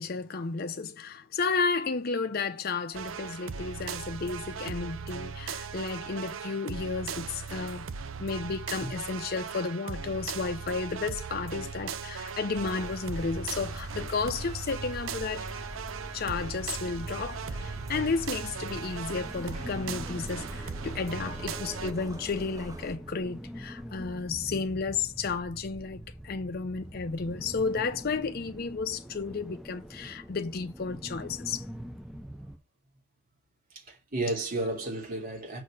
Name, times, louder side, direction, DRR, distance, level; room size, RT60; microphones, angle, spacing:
voice 1, 0.0-7.9 8.2-15.7 16.1-31.6, left 4 dB, 50° left, 0.6 m, -32 dB
sound 1, 2.9-21.9, right 6 dB, 80° right, 0.7 m, -38 dB
sound 2, 12.5-23.0, equal, 15° right, 1.2 m, -43 dB
sound 3, 17.0-32.6, equal, ahead, 0.6 m, -44 dB
voice 2, 33.9-35.6, right 2 dB, 45° right, 2.9 m, -32 dB
6.3 x 4.2 x 6.4 m
head